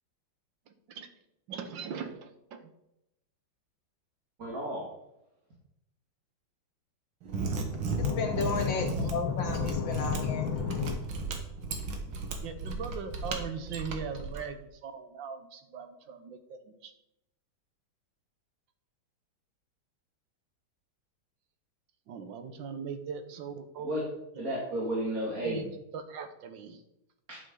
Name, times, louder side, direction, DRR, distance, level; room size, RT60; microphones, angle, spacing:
voice 1, 0.7-1.1 1.5-2.7 12.4-16.9 22.1-23.9 24.3-24.4 25.4-26.8, right 6 dB, 70° right, 1.6 m, -40 dB
voice 2, 4.4-4.9 23.8-24.0 24.4-25.7 27.3-27.4, right 1 dB, 45° right, 2.7 m, -32 dB
Mechanisms, 7.2-14.4, right 3 dB, 85° right, 2.2 m, -35 dB
voice 3, 8.0-11.2, left 6 dB, 70° left, 1.6 m, -30 dB
11.0 x 8.7 x 3.8 m
omnidirectional pair, 2.2 m